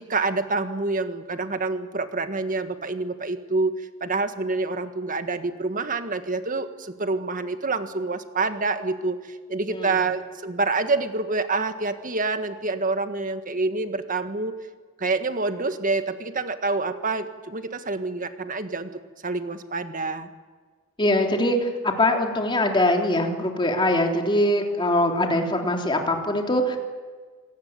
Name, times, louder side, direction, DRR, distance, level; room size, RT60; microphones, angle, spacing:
voice 1, 0.0-14.6 15.0-18.9 19.2-20.3, right 3 dB, 40° right, 9 dB, 1.7 m, -27 dB
voice 2, 9.7-10.0 21.0-26.8, left 1 dB, 25° left, 2 dB, 3.5 m, -22 dB
26.5 x 18.0 x 9.6 m, 1.5 s
head